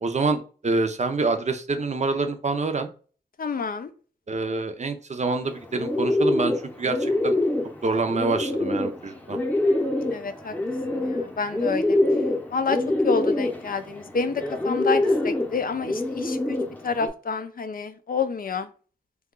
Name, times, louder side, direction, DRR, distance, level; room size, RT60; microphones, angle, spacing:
voice 1, 0.0-2.9 4.3-7.4 7.8-9.4, right 3 dB, 40° right, 6 dB, 0.5 m, -26 dB
voice 2, 3.4-3.9 10.1-10.5 10.9-12.0 12.5-16.6 16.8-18.7, left 5 dB, 55° left, 10 dB, 0.4 m, -28 dB
Bird, 5.4-17.1, left 2 dB, 10° left, 0.7 m, -25 dB
2.8 x 2.3 x 3.7 m, 0.39 s
cardioid pair, 65°, 18 cm